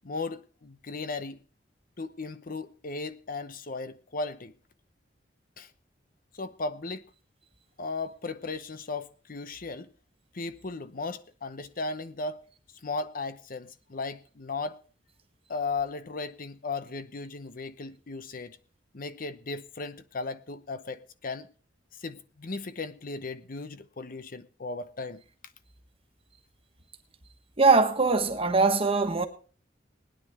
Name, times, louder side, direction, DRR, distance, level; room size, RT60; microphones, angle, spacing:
voice 1, 0.0-1.4 2.0-4.5 5.6-5.7 6.3-7.0 7.8-9.9 10.3-12.4 12.8-14.8 15.5-18.6 18.9-21.5 22.0-25.2, left 3 dB, 50° left, 0.8 m, -36 dB
voice 2, 27.6-29.3, right 4 dB, 30° right, 1.4 m, -22 dB
20.0 x 10.0 x 3.5 m
head